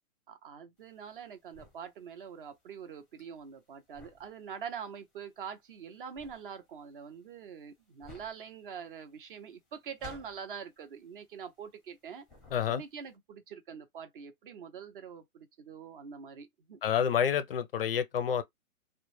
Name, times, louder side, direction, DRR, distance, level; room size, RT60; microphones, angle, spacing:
voice 1, 0.3-12.3 12.7-16.8, right 7 dB, 40° right, 0.6 m, -44 dB
sound 1, 0.8-12.0 12.2-13.1, left 3 dB, ahead, 0.6 m, -56 dB
voice 2, 12.5-12.8 16.8-18.4, left 8 dB, 45° left, 0.4 m, -28 dB
2.2 x 2.1 x 3.1 m
hypercardioid pair, 145°, 44 cm